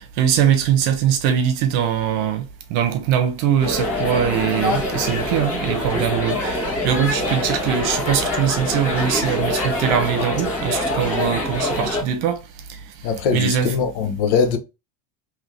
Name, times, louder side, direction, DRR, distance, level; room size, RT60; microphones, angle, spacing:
voice 1, 0.0-12.4 12.7-12.8 13.3-13.7, right 9 dB, 60° right, 1.0 m, -22 dB
sound 1, 3.6-12.0, left 1 dB, 30° left, 1.5 m, -24 dB
voice 2, 13.0-14.6, left 6 dB, 60° left, 0.9 m, -21 dB
3.7 x 3.1 x 3.1 m
cardioid pair, 155°, 48 cm